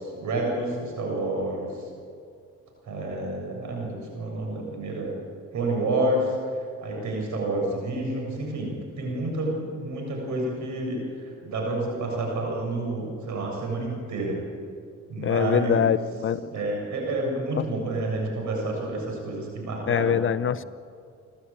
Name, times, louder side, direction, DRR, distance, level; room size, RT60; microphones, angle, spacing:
voice 1, 0.0-1.8 2.8-5.1 5.5-6.3 6.8-11.0 11.4-14.4 15.1-16.0 16.5-20.2, right 2 dB, 75° right, 0 dB, 7.3 m, -29 dB
voice 2, 15.2-16.5 17.6-17.7 19.9-20.6, left 8 dB, 45° left, 15 dB, 0.8 m, -24 dB
29.0 x 12.5 x 8.9 m, 2.3 s
cardioid pair, 90°, 30 cm